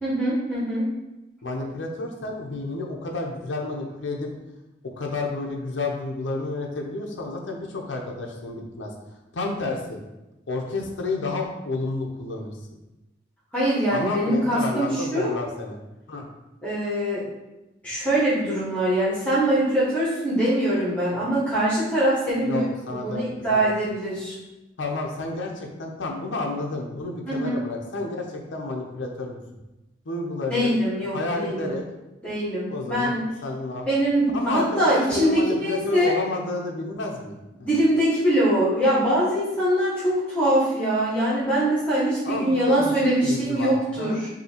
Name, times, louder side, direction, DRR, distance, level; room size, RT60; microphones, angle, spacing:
voice 1, 0.0-0.8 13.5-15.3 16.6-17.2 17.8-22.6 23.0-24.3 27.3-27.6 30.5-31.8 32.2-33.2 33.9-36.1 37.6-44.3, right 1 dB, 5° left, -10 dB, 1.3 m, -23 dB
voice 2, 1.4-4.3 4.9-8.9 9.3-10.0 10.5-12.5 13.9-15.8 16.1-16.3 22.4-23.6 24.8-29.4 30.1-30.8 31.1-31.8 32.7-33.9 34.3-37.7 42.2-42.9 43.2-44.2, left 2 dB, 75° left, 0 dB, 0.6 m, -31 dB
5.4 x 2.7 x 2.9 m, 1.0 s
head